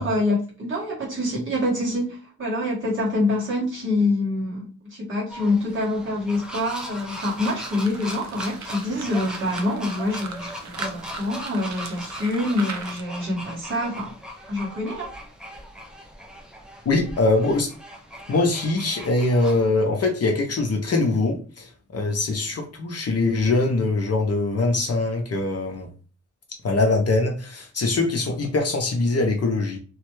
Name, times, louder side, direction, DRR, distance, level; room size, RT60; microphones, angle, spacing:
voice 1, 0.0-14.1 14.5-15.1, left 2 dB, 40° right, -7 dB, 1.6 m, -26 dB
sound 1, 5.3-19.7, left 1 dB, 5° right, 0.4 m, -39 dB
sound 2, 7.1-13.0, right 5 dB, 65° right, 0.5 m, -39 dB
voice 2, 16.9-17.7 18.3-25.9 26.6-29.8, left 2 dB, 50° left, 2 dB, 0.6 m, -22 dB
3.0 x 2.2 x 3.0 m, 0.39 s
wide cardioid pair, 175°, 31 cm